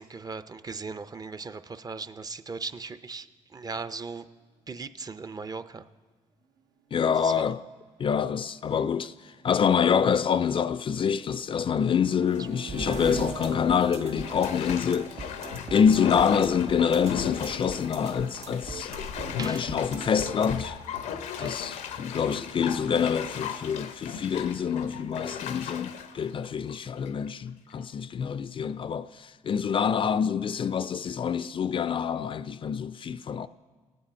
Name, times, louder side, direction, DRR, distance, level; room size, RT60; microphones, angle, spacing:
voice 1, 0.0-3.3 3.5-4.2 4.7-5.8 7.2-7.3 19.4-19.7 21.3-21.5, right 4 dB, 30° right, 0.5 m, -38 dB
sound 1, 5.0-5.1 5.3-5.7 6.4-10.4 10.7-17.4, right 5 dB, 85° right, 0.9 m, -48 dB
voice 2, 6.9-7.6 8.0-15.3 15.7-18.9 19.4-20.8 21.4-33.5, left 7 dB, 45° left, 0.4 m, -26 dB
Bathtub (filling or washing), 12.0-12.4 12.9-13.0 14.2-27.3 27.7-27.8, left 8 dB, 85° left, 0.6 m, -37 dB
sound 2, 12.7-20.7, right 4 dB, 60° right, 1.8 m, -40 dB
18.0 x 8.4 x 4.3 m
supercardioid pair, 65°, 12 cm